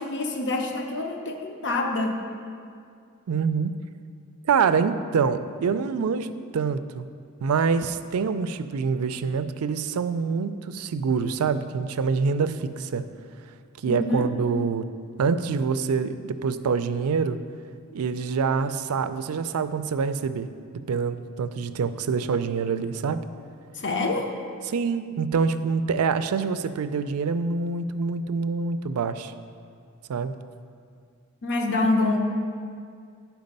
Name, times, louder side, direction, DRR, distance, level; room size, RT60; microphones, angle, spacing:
voice 1, 0.0-2.2 13.8-14.3 23.7-24.3 31.4-32.2, left 2 dB, 55° left, 3 dB, 0.8 m, -26 dB
voice 2, 3.3-3.7 4.5-7.1 7.4-13.1 13.8-14.9 15.2-17.4 17.9-20.5 20.9-23.2 24.7-29.3 30.1-30.3, right 5 dB, 80° right, 11 dB, 0.4 m, -26 dB
10.5 x 4.6 x 5.3 m, 2.3 s
head